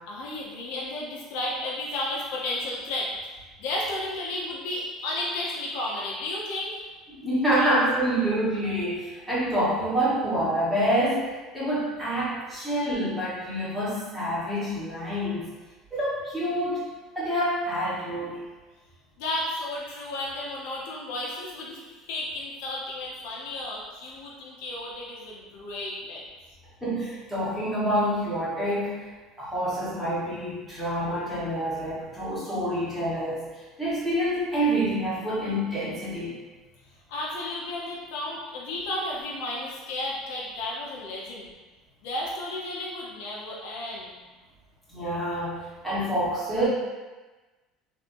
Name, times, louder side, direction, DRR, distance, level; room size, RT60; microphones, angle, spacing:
voice 1, 0.1-3.1 3.6-6.9 7.6-7.7 19.2-26.2 37.1-41.5 42.0-44.1, left 2 dB, 80° left, -4 dB, 0.7 m, -33 dB
voice 2, 7.1-15.4 15.9-16.9 17.1-18.4 26.8-29.1 29.4-36.4 44.9-46.7, right 1 dB, ahead, -11 dB, 1.4 m, -27 dB
3.4 x 2.7 x 2.6 m, 1.2 s
cardioid pair, 135°, 0 cm